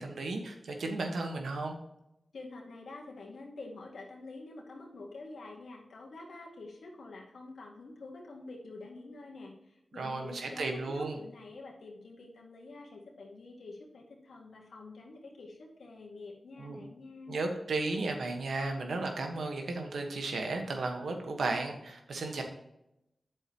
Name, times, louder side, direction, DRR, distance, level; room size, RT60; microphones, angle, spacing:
voice 1, 0.0-1.8 9.9-11.2 16.6-16.8 17.3-22.4, right 3 dB, 85° right, 4 dB, 1.4 m, -34 dB
voice 2, 2.3-17.4, left 3 dB, 85° left, -1 dB, 2.2 m, -47 dB
9.1 x 7.2 x 3.0 m, 0.84 s
cardioid pair, 40°, 0 cm